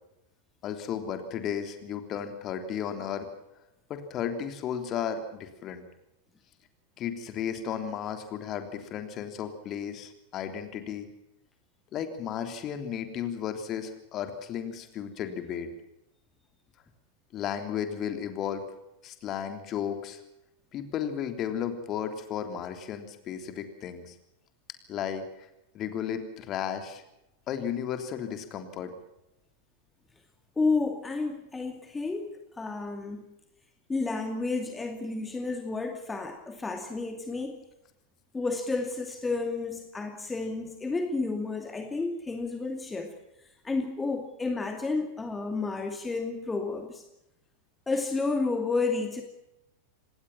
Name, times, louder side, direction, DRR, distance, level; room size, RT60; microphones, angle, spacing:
voice 1, 0.6-3.3 3.9-5.8 7.0-11.1 11.9-15.7 17.3-18.6 19.0-20.2 20.7-24.1 24.9-25.5 25.7-27.0 27.5-28.9, left 8 dB, 35° left, 7 dB, 3.3 m, -34 dB
voice 2, 30.6-33.3 33.9-37.6 38.3-43.1 43.6-47.0 47.9-49.2, left 3 dB, 10° left, 5 dB, 2.5 m, -31 dB
26.5 x 19.5 x 5.8 m, 0.87 s
figure-of-eight pair, 90°, 0 cm